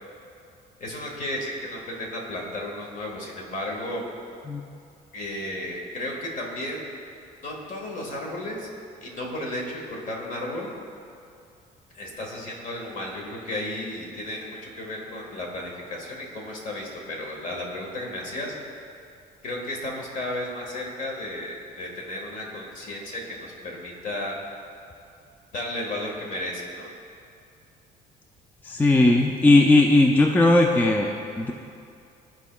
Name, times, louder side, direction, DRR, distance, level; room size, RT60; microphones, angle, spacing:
voice 1, 0.8-4.1 5.1-6.9 7.4-8.7 9.0-10.7 11.9-18.5 19.4-24.4 25.5-26.9, left 1 dB, 50° left, -1 dB, 1.5 m, -33 dB
voice 2, 28.6-31.5, left 2 dB, 10° left, 2 dB, 0.4 m, -18 dB
13.0 x 4.5 x 2.3 m, 2.5 s
cardioid pair, 110°, 17 cm